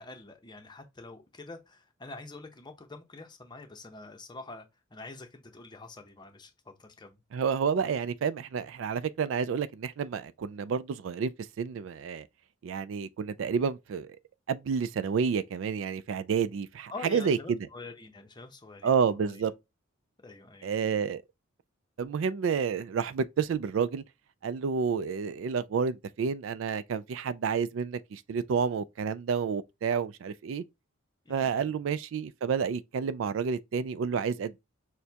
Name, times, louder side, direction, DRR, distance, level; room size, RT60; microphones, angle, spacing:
voice 1, 0.0-4.7 4.9-7.2 16.9-19.5 20.2-20.7 31.2-31.7, left 3 dB, 20° left, 0.7 m, -46 dB
voice 2, 7.3-11.3 11.6-12.3 12.6-14.2 14.5-17.6 18.8-19.5 20.6-21.2 22.0-24.0 24.4-30.6 31.3-34.6, right 6 dB, 65° right, 0.3 m, -30 dB
6.5 x 2.2 x 2.8 m
head